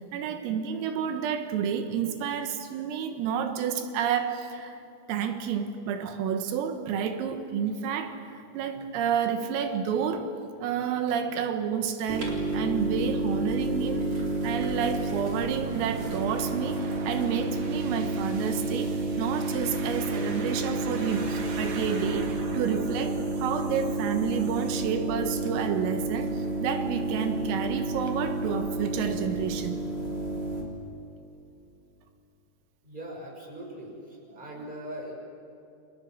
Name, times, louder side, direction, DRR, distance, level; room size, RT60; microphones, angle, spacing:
voice 1, 0.1-4.8 5.1-10.3 10.6-29.8, right 7 dB, 85° right, 7 dB, 4.1 m, -30 dB
sound 1, 12.1-30.6, right 2 dB, 30° right, 4.1 m, -30 dB
sound 2, 15.0-24.7, right 4 dB, 45° right, 2.7 m, -43 dB
voice 2, 32.8-35.1, right 1 dB, 10° right, 0 dB, 5.6 m, -40 dB
30.0 x 25.0 x 7.7 m, 2.8 s
omnidirectional pair, 5.9 m